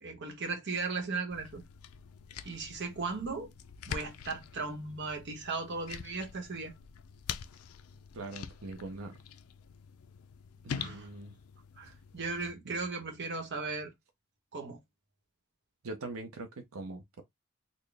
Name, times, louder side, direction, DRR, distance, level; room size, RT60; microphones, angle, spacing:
voice 1, 0.0-1.6 2.4-3.5 3.9-6.7 10.7-11.1 11.8-13.9 14.5-14.8, right 4 dB, 55° right, 1.0 m, -37 dB
sound 1, 1.3-12.5, left 7 dB, 85° left, 0.4 m, -45 dB
voice 2, 8.1-9.2 10.6-11.3 15.8-17.2, right 2 dB, 85° right, 0.7 m, -42 dB
4.1 x 2.2 x 3.3 m
head